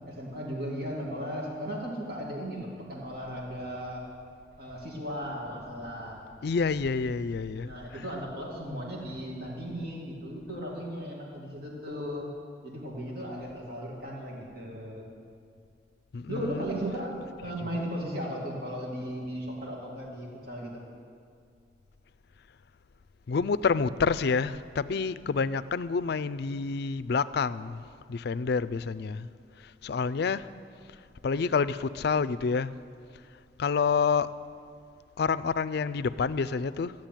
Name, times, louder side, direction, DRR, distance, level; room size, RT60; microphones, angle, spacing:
voice 1, 0.0-4.0 4.6-6.2 7.6-12.3 12.6-15.1 16.3-20.8, equal, 60° right, 2.3 m, -36 dB
voice 2, 6.4-7.7 16.1-16.7 23.3-27.8 28.1-29.3 29.8-30.5 31.2-32.7 33.6-34.3 35.2-36.9, left 5 dB, 60° left, 0.4 m, -28 dB
14.5 x 7.7 x 9.0 m
head